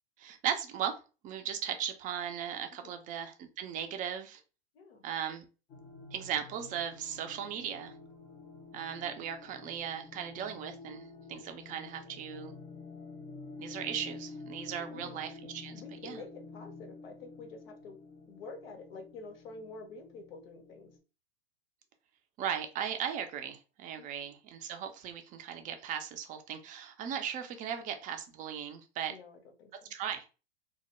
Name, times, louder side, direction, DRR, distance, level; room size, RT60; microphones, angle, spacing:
voice 1, 0.2-1.0 1.2-4.4 5.0-5.4 6.1-7.9 8.7-12.5 13.6-16.2 22.4-29.1 29.9-30.3, right 9 dB, 25° right, 7 dB, 0.4 m, -37 dB
sound 1, 5.7-21.0, left 3 dB, 20° left, 0.5 m, -49 dB
voice 2, 14.7-15.2 15.7-18.0 18.3-20.9 24.0-24.1 29.1-29.9, left 3 dB, 65° left, 4 dB, 0.9 m, -48 dB
2.3 x 2.0 x 2.9 m, 0.32 s
hypercardioid pair, 105°, 32 cm